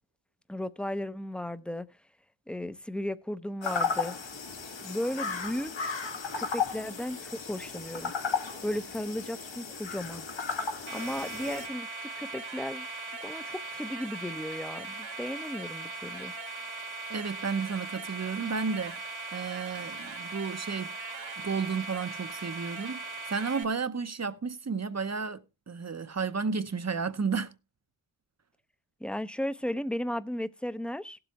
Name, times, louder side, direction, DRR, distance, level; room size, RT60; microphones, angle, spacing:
voice 1, 0.5-1.9 2.5-4.1 4.8-6.0 6.4-8.1 8.6-10.3 10.9-16.3 29.0-31.2, left 1 dB, ahead, 0.6 m, -35 dB
sound 1, 3.6-11.7, left 5 dB, 75° left, 1.8 m, -34 dB
sound 2, 10.9-23.6, right 3 dB, 80° right, 2.4 m, -39 dB
voice 2, 17.1-19.0 19.3-20.9 21.4-27.5, right 5 dB, 35° right, 0.8 m, -32 dB
18.0 x 7.8 x 2.9 m
wide cardioid pair, 75°, 46 cm